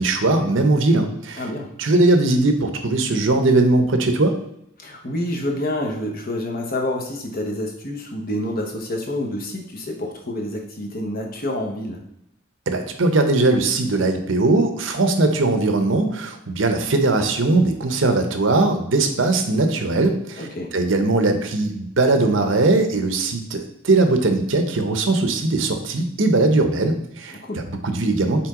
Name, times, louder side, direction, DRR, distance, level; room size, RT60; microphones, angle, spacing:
voice 1, 0.0-1.4 1.8-4.4 12.7-20.5 20.7-27.4 27.7-28.5, right 2 dB, 75° right, 6 dB, 0.8 m, -19 dB
voice 2, 1.4-1.7 4.8-12.0 20.4-20.7 27.3-27.7, left 1 dB, 45° left, 2 dB, 1.0 m, -28 dB
5.9 x 4.2 x 3.7 m, 0.76 s
head